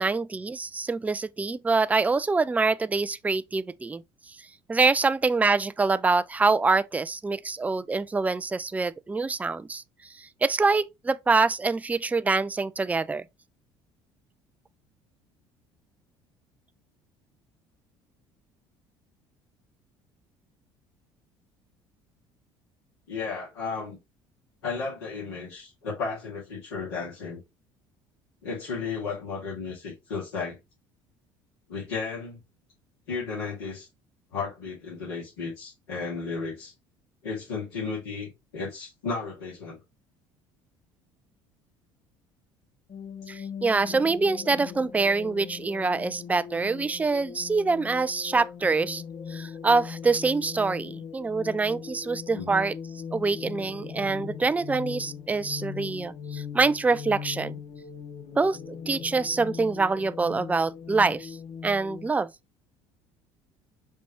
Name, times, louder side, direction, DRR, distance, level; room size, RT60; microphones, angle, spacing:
voice 1, 0.0-4.4 4.7-13.2 43.3-49.0 49.3-52.8 53.1-57.6 58.4-61.4 61.6-62.3, right 4 dB, 10° right, 0.4 m, -25 dB
voice 2, 23.1-24.0 24.6-27.4 28.4-30.6 31.7-32.4 33.1-33.9 34.3-36.7 37.2-39.8 52.3-52.6, left 4 dB, 80° left, 2.4 m, -34 dB
sound 1, 42.9-62.1, left 7 dB, 50° left, 0.9 m, -40 dB
5.3 x 3.1 x 3.0 m
hypercardioid pair, 65°, 13 cm